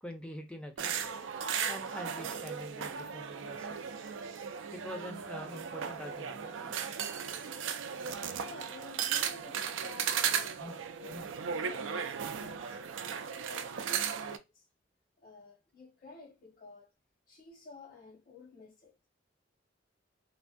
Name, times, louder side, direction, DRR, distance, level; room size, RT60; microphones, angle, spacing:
voice 1, 0.0-0.9 1.7-3.8 4.7-6.7 10.6-10.8 11.1-11.3, left 1 dB, 5° left, 0.5 m, -45 dB
sound 1, 0.8-14.4, right 7 dB, 85° right, 0.4 m, -36 dB
voice 2, 8.4-12.8 13.4-14.6 15.2-16.9 17.3-19.1, left 3 dB, 50° left, 1.2 m, -52 dB
3.3 x 2.2 x 2.5 m
head